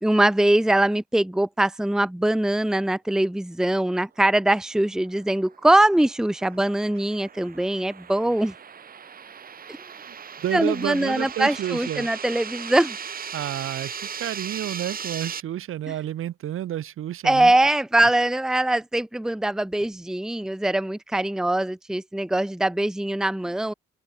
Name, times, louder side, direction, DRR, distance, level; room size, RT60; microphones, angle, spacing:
voice 1, 0.0-8.5 10.5-13.0 17.2-23.7, right 1 dB, 5° right, 0.9 m, -22 dB
sound 1, 5.0-15.4, right 7 dB, 45° right, 4.9 m, -38 dB
voice 2, 10.4-12.1 13.3-17.5, right 12 dB, 80° right, 7.1 m, -30 dB
open air
cardioid pair, 130°, 21 cm